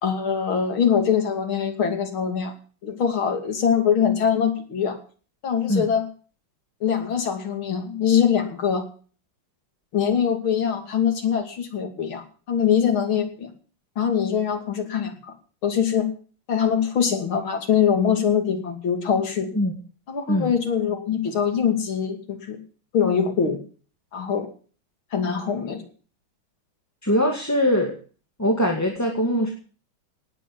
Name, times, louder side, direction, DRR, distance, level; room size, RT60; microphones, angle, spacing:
voice 1, 0.0-2.5 2.8-5.0 5.4-6.0 6.8-8.8 9.9-13.5 14.0-15.3 15.6-16.1 16.5-19.5 20.1-22.6 22.9-23.6 24.1-24.5 25.1-25.8, left 7 dB, 85° left, 6 dB, 3.5 m, -23 dB
voice 2, 27.0-28.0 28.4-29.5, equal, 10° left, 1 dB, 2.0 m, -22 dB
18.0 x 8.5 x 7.1 m, 0.41 s
omnidirectional pair, 2.2 m